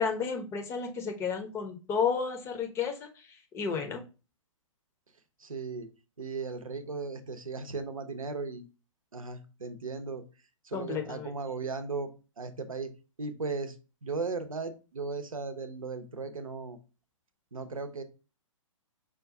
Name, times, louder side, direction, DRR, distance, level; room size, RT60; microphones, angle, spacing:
voice 1, 0.0-3.1 3.5-4.0 10.7-11.3, left 6 dB, 15° left, 4 dB, 0.6 m, -32 dB
voice 2, 5.4-5.9 6.2-8.7 9.1-10.2 10.6-12.1 12.4-12.9 13.2-13.8 14.0-16.8 17.5-18.0, right 4 dB, 80° right, 9 dB, 0.7 m, -36 dB
5.0 x 2.3 x 3.7 m, 0.32 s
figure-of-eight pair, 120°, 17 cm